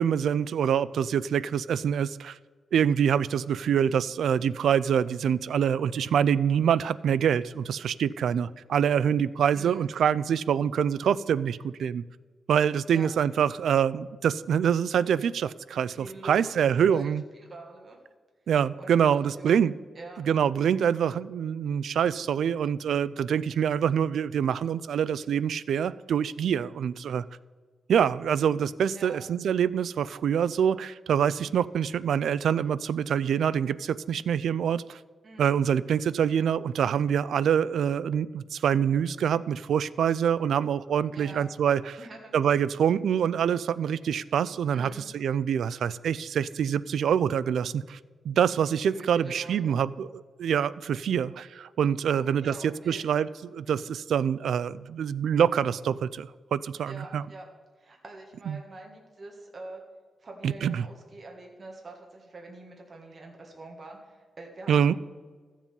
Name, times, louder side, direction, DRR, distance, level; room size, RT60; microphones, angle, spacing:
voice 1, 0.0-2.4 2.7-12.0 12.5-17.2 18.5-19.7 20.3-27.2 27.9-35.0 35.4-42.0 42.3-48.0 48.2-57.2 58.5-58.6 60.4-60.9 64.7-64.9, right 8 dB, 80° right, 17 dB, 0.3 m, -25 dB
voice 2, 9.5-9.8 12.9-13.1 15.9-16.6 16.9-18.0 18.8-19.7 19.9-20.2 29.0-29.2 35.2-35.5 41.1-41.4 42.0-42.3 44.7-45.2 48.9-49.7 52.1-53.0 56.9-57.4 57.8-59.8 60.2-65.0, right 2 dB, 35° right, 0 dB, 1.7 m, -45 dB
13.5 x 7.4 x 5.4 m, 1.5 s
wide cardioid pair, 175°, 0 cm